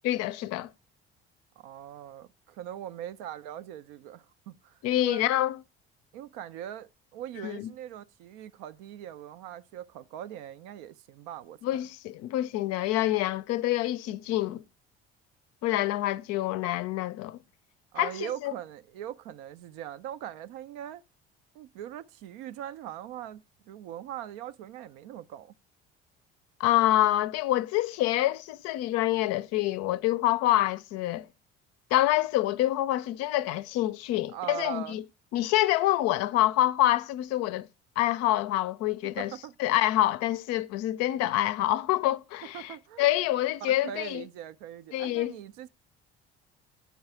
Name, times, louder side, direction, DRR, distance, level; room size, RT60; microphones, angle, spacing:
voice 1, 0.0-0.7 4.8-5.6 7.4-7.7 11.6-14.6 15.6-17.4 18.0-18.5 26.6-31.3 31.9-35.0 35.3-37.7 38.0-39.3 39.6-44.2 44.9-45.3, left 14 dB, 55° left, 0.5 m, -26 dB
voice 2, 1.6-5.3 6.1-11.6 17.9-21.0 21.5-25.5 34.3-35.0 39.0-39.8 42.5-43.1 43.6-45.7, right 11 dB, 65° right, 0.5 m, -41 dB
9.2 x 4.7 x 4.4 m
figure-of-eight pair, 55°, 31 cm